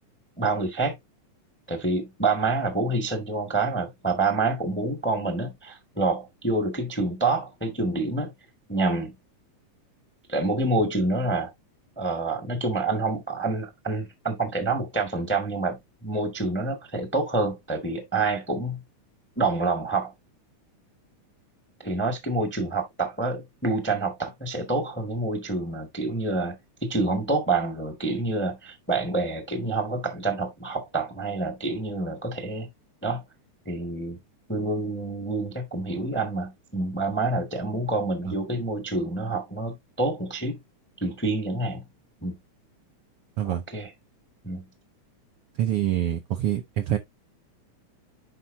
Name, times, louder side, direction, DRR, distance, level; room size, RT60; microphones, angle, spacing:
voice 1, 0.4-0.9 1.7-8.3 8.7-9.1 10.3-11.5 12.0-18.8 19.4-20.1 21.8-26.5 26.8-32.7 33.0-33.2 33.6-34.2 34.5-40.6 41.0-41.8 42.2-42.4 43.4-43.9 44.4-44.6, right 3 dB, 10° left, 0.7 m, -27 dB
voice 2, 45.6-47.0, right 12 dB, 85° right, 1.2 m, -26 dB
10.0 x 4.5 x 2.7 m
omnidirectional pair, 3.5 m